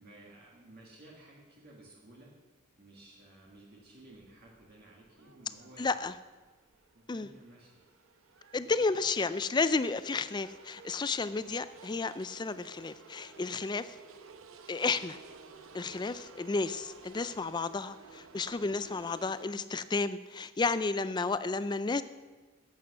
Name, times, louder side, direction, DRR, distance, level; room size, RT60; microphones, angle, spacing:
voice 1, 0.0-2.3 2.8-6.1 6.9-7.8 8.7-8.9, right 1 dB, 45° right, -4 dB, 1.8 m, -55 dB
sound 1, 3.5-19.4, right 4 dB, 70° right, 0.8 m, -54 dB
voice 2, 5.8-6.2 7.1-7.3 8.5-14.0 14.7-15.2 15.7-22.0, left 4 dB, 20° left, 14 dB, 0.3 m, -32 dB
10.5 x 8.4 x 6.0 m, 1.3 s
head